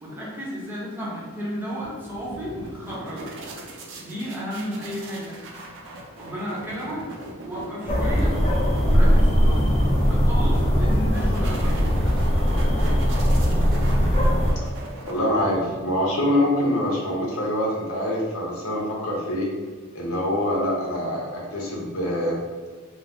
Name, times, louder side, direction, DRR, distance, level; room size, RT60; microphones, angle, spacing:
voice 1, 0.0-3.3 4.0-5.4 6.2-7.0 7.4-8.4 8.8-9.7 10.0-12.0, equal, 10° right, -7 dB, 0.8 m, -33 dB
sound 1, 1.8-16.2, right 1 dB, 65° right, 0.5 m, -40 dB
sound 2, 7.9-14.5, equal, 30° left, 0.4 m, -20 dB
voice 2, 15.1-19.5 19.9-21.2 21.5-22.4, left 1 dB, 75° left, -3 dB, 0.7 m, -25 dB
2.6 x 2.0 x 3.4 m, 1.5 s
head